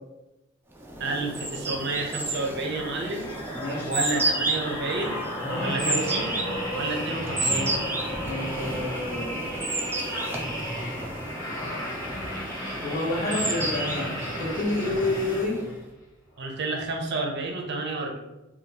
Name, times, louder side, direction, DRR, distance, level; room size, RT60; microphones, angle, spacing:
sound 1, 0.8-15.8, right 2 dB, 10° right, 0.3 m, -32 dB
voice 1, 1.0-3.3 3.8-5.2 5.6-6.5 6.7-7.7 16.4-18.2, right 2 dB, 55° right, 2 dB, 0.6 m, -30 dB
sound 2, 2.2-15.8 16.4-16.6, equal, 15° left, 1.1 m, -34 dB
voice 2, 3.5-3.9 5.5-6.0 8.2-9.6 11.4-11.6 12.8-14.1 14.4-15.6, left 2 dB, 40° left, -4 dB, 0.9 m, -29 dB
3.6 x 2.3 x 2.8 m, 0.97 s
head